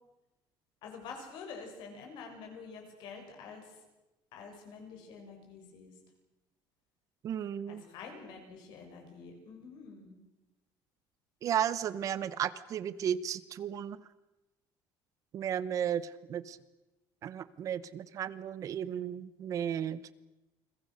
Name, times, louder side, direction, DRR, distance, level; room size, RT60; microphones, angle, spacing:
voice 1, 0.8-3.7 4.3-5.9 7.7-10.2, left 5 dB, 60° left, 3 dB, 7.1 m, -47 dB
voice 2, 7.2-7.8 11.4-14.0 15.3-16.6 17.2-20.0, right 9 dB, 40° right, 16 dB, 0.9 m, -34 dB
29.5 x 21.5 x 6.5 m, 1.0 s
cardioid pair, 170°, 9 cm